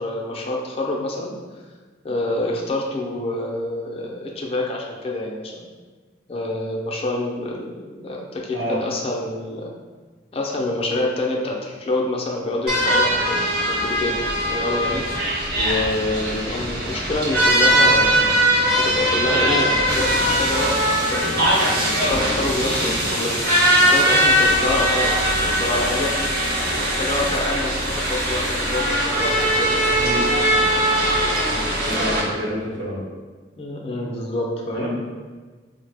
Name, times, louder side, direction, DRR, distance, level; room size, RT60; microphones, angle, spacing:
voice 1, 0.0-1.3 2.0-5.7 6.3-9.7 10.3-13.4 13.7-14.1 14.5-15.0 15.6-18.2 18.7-23.4 23.9-26.1 26.7-30.7 33.6-34.9, left 2 dB, 30° left, -1 dB, 0.4 m, -27 dB
sound 1, 12.7-32.2, right 1 dB, 55° right, 0.8 m, -20 dB
voice 2, 31.5-33.0 34.7-34.9, equal, 80° right, -4 dB, 0.9 m, -28 dB
3.9 x 2.0 x 3.3 m, 1.4 s
head